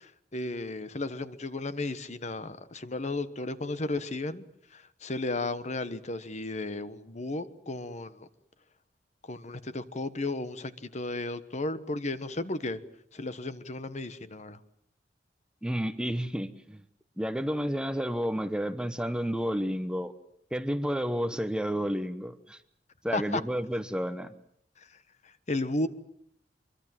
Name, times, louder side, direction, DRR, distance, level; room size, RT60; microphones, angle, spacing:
voice 1, 0.0-4.4 4.7-8.3 9.3-12.8 13.1-14.6 23.1-23.4 24.8-24.9 25.5-25.9, left 2 dB, 40° left, 13 dB, 1.2 m, -34 dB
voice 2, 15.6-16.8 17.2-20.1 20.5-22.6 23.0-24.3, equal, 5° right, 10 dB, 1.0 m, -31 dB
24.5 x 23.5 x 7.6 m, 0.70 s
head